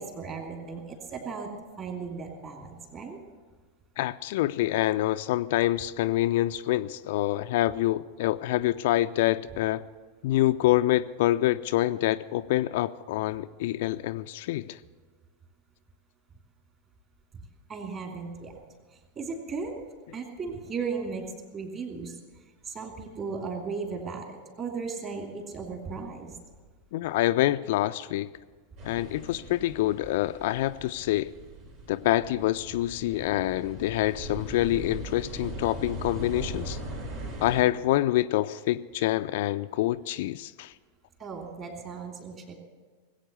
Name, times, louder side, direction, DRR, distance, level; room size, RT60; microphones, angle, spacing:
voice 1, 0.0-1.5 1.8-3.2 17.7-18.5 19.2-19.7 20.1-21.2 21.5-22.2 22.6-26.4 41.2-42.5, right 5 dB, 30° right, 3 dB, 2.9 m, -36 dB
voice 2, 4.0-9.8 10.2-14.8 26.9-28.3 28.8-31.3 31.9-36.8 37.4-40.7, left 15 dB, 50° left, 11 dB, 0.4 m, -26 dB
sound 1, 28.8-37.6, right 1 dB, 50° right, 4.2 m, -40 dB
19.5 x 8.5 x 6.8 m, 1.4 s
figure-of-eight pair, 90°, 0 cm